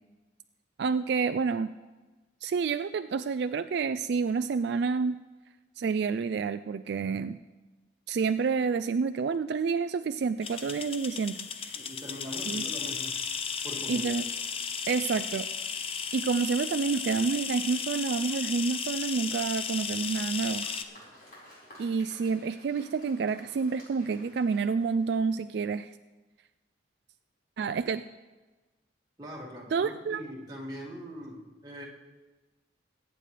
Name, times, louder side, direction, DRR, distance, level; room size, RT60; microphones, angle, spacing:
voice 1, 0.8-1.8 2.4-5.2 5.8-7.4 8.1-11.8 12.5-12.7 13.9-14.3 14.9-15.5 16.1-20.7 21.8-25.9 27.6-28.0 29.7-30.2, right 5 dB, 60° right, 10 dB, 0.3 m, -29 dB
sound 1, 10.4-20.8, left 6 dB, 30° left, 0.6 m, -34 dB
voice 2, 11.8-13.2 13.6-14.1 29.2-31.9, equal, 20° right, -3 dB, 2.1 m, -41 dB
Applause, 20.0-25.5, equal, 45° left, 4.9 m, -54 dB
22.5 x 9.0 x 3.3 m, 1.2 s
head